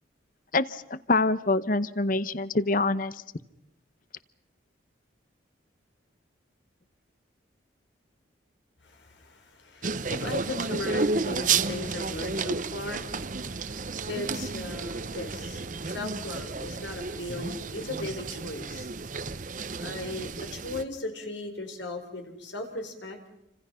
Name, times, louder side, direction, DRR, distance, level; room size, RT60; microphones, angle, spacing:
voice 1, 0.5-3.2, left 3 dB, 45° left, 15 dB, 0.8 m, -25 dB
voice 2, 8.8-18.9 19.8-23.2, left 2 dB, 75° left, 5 dB, 4.7 m, -38 dB
sound 1, 9.8-20.8, right 4 dB, 40° right, 0.8 m, -32 dB
29.0 x 25.5 x 5.7 m, 0.86 s
head